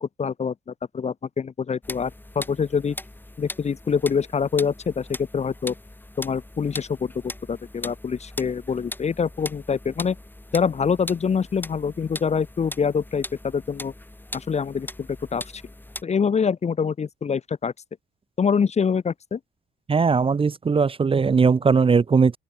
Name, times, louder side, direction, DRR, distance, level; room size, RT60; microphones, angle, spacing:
voice 1, 0.0-3.0 3.4-5.7 6.2-10.2 10.5-13.9 14.3-15.6 16.0-17.7 18.4-19.4, left 6 dB, 35° left, 0.8 m, -25 dB
sound 1, 1.8-16.0, left 1 dB, 10° left, 7.9 m, -40 dB
voice 2, 19.9-22.4, right 5 dB, 25° right, 0.7 m, -19 dB
open air
cardioid pair, 90°, 20 cm